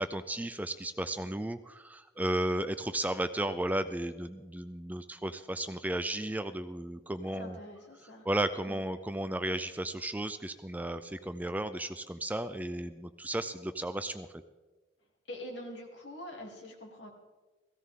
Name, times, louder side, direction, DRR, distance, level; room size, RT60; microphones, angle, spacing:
voice 1, 0.0-7.6 8.2-14.3, right 1 dB, 10° right, 11 dB, 0.4 m, -34 dB
voice 2, 7.3-8.3 8.6-8.8 15.3-17.1, left 1 dB, 70° left, 0 dB, 3.0 m, -45 dB
17.0 x 15.5 x 3.7 m, 1.3 s
head